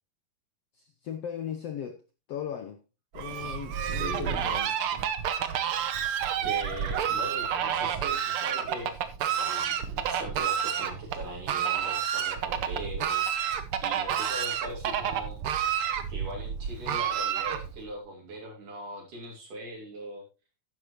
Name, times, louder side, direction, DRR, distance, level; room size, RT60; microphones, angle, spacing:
voice 1, 0.7-2.0 2.3-2.8 3.1-5.1, left 9 dB, 70° left, 1.5 m, -38 dB
Fowl, 3.1-17.9, right 8 dB, 85° right, 1.2 m, -30 dB
voice 2, 4.0-4.4 6.4-8.9 9.2-15.4 16.1-20.3, right 1 dB, 70° right, 4.2 m, -40 dB
11.5 x 9.5 x 3.1 m
omnidirectional pair, 3.9 m